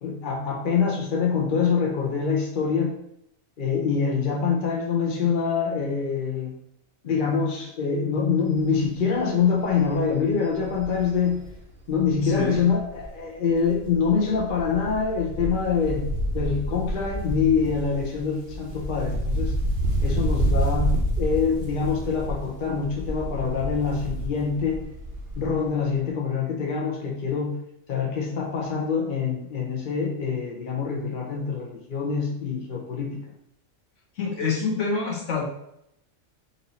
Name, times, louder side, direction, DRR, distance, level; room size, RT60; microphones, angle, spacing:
voice 1, 0.0-2.9 3.6-6.5 7.0-11.4 11.9-16.1 16.3-19.5 20.0-24.8 25.4-27.6 27.9-33.2, left 6 dB, 50° left, 0 dB, 0.8 m, -25 dB
Wind, 8.6-8.9 9.3-9.4 9.7-13.2 13.5-25.7 25.9-26.0, right 1 dB, 45° right, 1.0 m, -29 dB
voice 2, 12.2-12.6 34.2-35.4, left 4 dB, 65° left, -2 dB, 1.3 m, -26 dB
4.2 x 2.7 x 4.1 m, 0.77 s
omnidirectional pair, 1.4 m